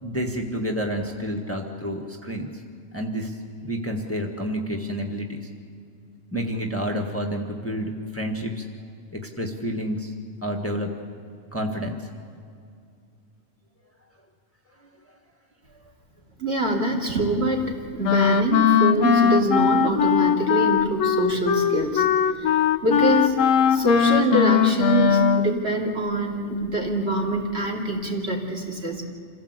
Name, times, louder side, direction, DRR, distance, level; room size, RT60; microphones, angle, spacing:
voice 1, 0.0-2.5 2.9-3.3 3.6-5.4 6.3-8.7 9.4-10.1 10.4-10.9 11.5-12.0, equal, 10° left, 2 dB, 1.6 m, -29 dB
voice 2, 16.4-22.1 22.4-23.4 23.6-29.0, right 1 dB, 55° right, -1 dB, 3.1 m, -25 dB
Wind instrument woodwind instrument, 18.0-25.6, left 7 dB, 75° left, 1.2 m, -20 dB
27.0 x 16.0 x 8.1 m, 2.5 s
omnidirectional pair, 1.3 m